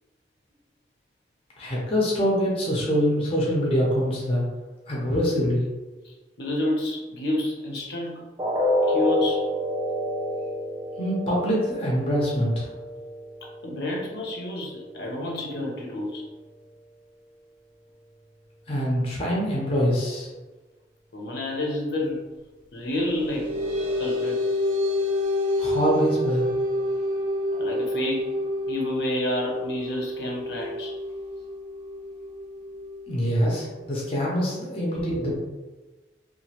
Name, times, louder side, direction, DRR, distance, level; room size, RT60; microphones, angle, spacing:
voice 1, 1.6-4.4 4.9-5.7 11.0-12.7 18.7-20.3 25.6-26.5 33.1-35.4, equal, 30° left, -4 dB, 0.6 m, -24 dB
voice 2, 6.4-8.3 8.9-9.5 13.6-16.2 21.1-22.2 22.7-23.5 24.0-24.4 27.5-30.9, left 1 dB, 65° left, -2 dB, 0.7 m, -29 dB
sound 1, 8.4-14.4 14.8-14.9 15.4-15.5, left 1 dB, 20° right, 0.3 m, -28 dB
sound 2, 22.9-33.9, left 1 dB, 50° right, 0.7 m, -28 dB
2.9 x 2.5 x 2.8 m, 1.2 s
head